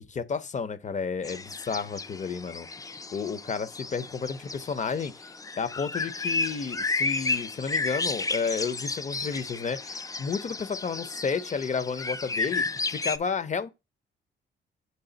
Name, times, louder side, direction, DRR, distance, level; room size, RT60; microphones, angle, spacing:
voice 1, 0.0-2.7 3.1-5.1 5.6-12.6 13.0-13.7, left 5 dB, 35° left, 0.8 m, -31 dB
sound 1, 1.2-13.2, left 3 dB, 15° left, 0.4 m, -32 dB
7.0 x 3.9 x 4.0 m
cardioid pair, 90°, 20 cm